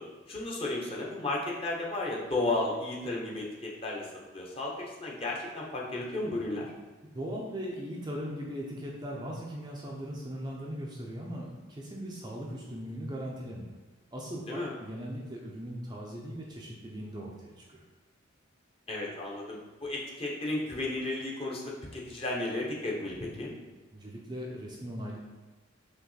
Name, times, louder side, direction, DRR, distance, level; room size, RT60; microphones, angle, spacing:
voice 1, 0.0-4.1 4.3-6.7 14.5-14.7 18.9-23.5, left 2 dB, 25° left, -3 dB, 1.1 m, -34 dB
voice 2, 7.1-13.8 14.1-17.8 23.9-25.2, equal, 20° right, -3 dB, 0.7 m, -39 dB
5.8 x 3.2 x 5.7 m, 1.3 s
head